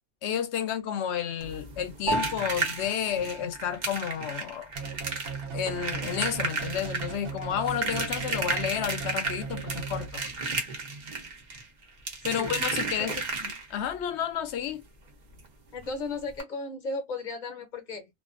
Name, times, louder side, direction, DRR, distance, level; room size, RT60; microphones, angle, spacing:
voice 1, 0.2-4.7 5.5-10.2 12.2-14.8, left 9 dB, 75° left, 0.9 m, -31 dB
sound 1, 1.4-13.9 15.4-15.5 15.8-15.9 16.3-16.4, right 3 dB, 45° right, 0.7 m, -33 dB
Piano, 2.1-11.7, right 1 dB, 10° right, 0.3 m, -40 dB
sound 2, 4.8-10.5, right 5 dB, 80° right, 0.9 m, -37 dB
voice 2, 15.7-18.1, left 3 dB, 45° left, 0.8 m, -35 dB
2.4 x 2.3 x 2.4 m
omnidirectional pair, 1.2 m